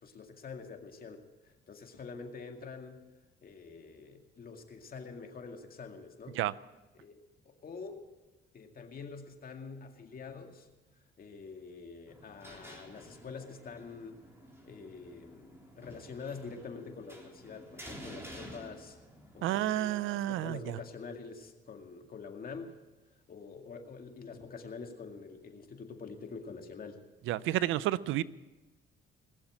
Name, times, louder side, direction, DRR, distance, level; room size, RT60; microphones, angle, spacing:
voice 1, 0.0-3.0 3.4-6.4 7.0-8.0 8.5-10.7 11.2-14.2 14.6-19.0 19.3-22.7 23.3-27.0, left 5 dB, 45° left, 4 dB, 2.1 m, -46 dB
sound 1, 12.1-19.4, equal, 10° right, 3.6 m, -51 dB
voice 2, 19.4-20.8 27.3-28.2, right 14 dB, 90° right, 18 dB, 0.5 m, -30 dB
20.0 x 7.2 x 8.9 m, 1.1 s
cardioid pair, 90°, 20 cm